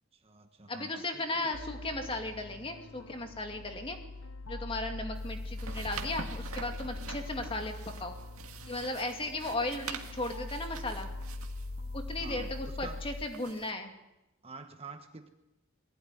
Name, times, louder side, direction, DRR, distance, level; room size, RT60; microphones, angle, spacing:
voice 1, 0.1-1.5 7.2-7.4 12.2-13.0 14.4-15.3, right 3 dB, 25° right, 6 dB, 1.2 m, -48 dB
voice 2, 0.7-4.0 4.5-7.7 8.0-8.2 8.7-11.1 11.9-13.9, left 2 dB, 25° left, 4 dB, 2.4 m, -36 dB
sound 1, 1.5-13.3, left 2 dB, 65° left, 0.7 m, -42 dB
sound 2, 5.2-13.7, right 5 dB, 85° right, 2.1 m, -46 dB
21.0 x 16.5 x 9.9 m, 0.95 s
head